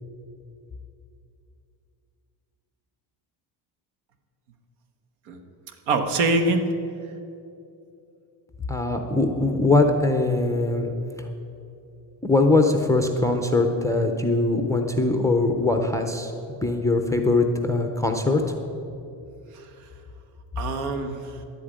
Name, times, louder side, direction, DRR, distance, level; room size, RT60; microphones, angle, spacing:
voice 1, 5.3-6.7 19.5-19.9 20.6-21.4, right 2 dB, 85° right, 6 dB, 1.5 m, -26 dB
voice 2, 8.7-10.9 11.2-11.3 12.2-18.4, left 2 dB, 5° left, 4 dB, 0.3 m, -22 dB
10.5 x 8.6 x 8.7 m, 2.7 s
cardioid pair, 170°, 48 cm